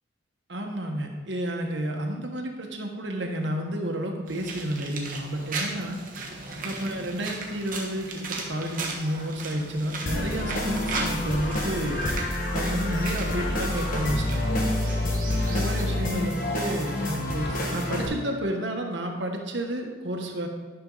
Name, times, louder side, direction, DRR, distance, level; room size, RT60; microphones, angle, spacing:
voice 1, 0.5-6.0 6.6-12.0 12.5-14.6 15.5-20.5, right 1 dB, 70° right, 2 dB, 1.3 m, -31 dB
sound 1, 4.3-15.8, right 3 dB, 45° right, 1.3 m, -37 dB
sound 2, 10.1-18.1, left 1 dB, 45° left, 1.4 m, -28 dB
12.5 x 6.0 x 4.0 m, 1.4 s
head